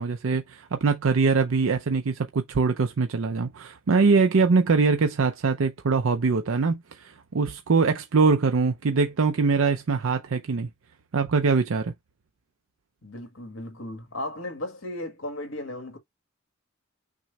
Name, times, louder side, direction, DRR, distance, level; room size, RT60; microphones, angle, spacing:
voice 1, 0.0-10.7 11.1-11.9, right 4 dB, 85° right, 0.6 m, -23 dB
voice 2, 13.0-16.0, left 1 dB, 70° left, 1.7 m, -35 dB
6.1 x 2.1 x 4.1 m
head